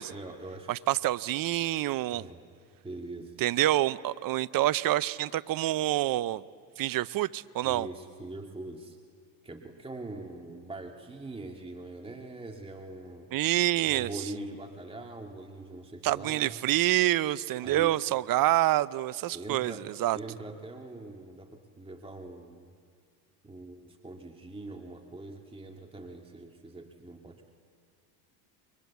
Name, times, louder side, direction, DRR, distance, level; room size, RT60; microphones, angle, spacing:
voice 1, 0.1-0.9 2.1-2.5 2.8-3.4 7.6-9.0 9.4-13.3 13.8-16.6 17.6-17.9 19.3-19.9 20.1-22.7 23.4-27.5, right 2 dB, 10° right, 3 dB, 2.2 m, -43 dB
voice 2, 0.7-2.3 3.4-6.4 6.8-7.9 13.3-14.1 16.0-20.2, right 15 dB, 45° right, 19 dB, 0.7 m, -27 dB
29.5 x 23.0 x 8.4 m, 2.1 s
supercardioid pair, 90°, 50 cm